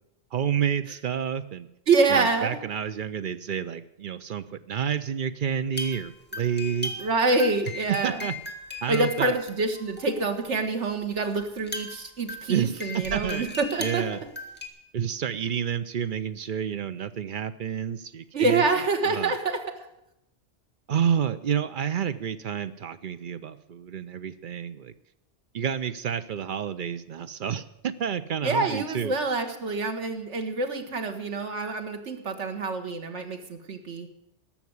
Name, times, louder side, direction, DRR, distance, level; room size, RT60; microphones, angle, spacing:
voice 1, 0.3-1.7 2.1-6.9 8.0-8.3 8.8-9.3 12.5-13.5 13.8-14.2 14.9-18.6 19.1-19.3 20.9-24.9 25.5-29.1, right 8 dB, 50° right, 12 dB, 0.8 m, -29 dB
voice 2, 1.9-2.6 7.0-8.3 8.9-14.3 18.3-19.6 28.4-34.1, right 3 dB, 85° right, 5 dB, 1.7 m, -26 dB
sound 1, 5.7-10.6 11.1-11.2 11.4-14.7, left 2 dB, 10° left, 1.7 m, -38 dB
14.5 x 6.0 x 9.6 m, 0.81 s
omnidirectional pair, 1.2 m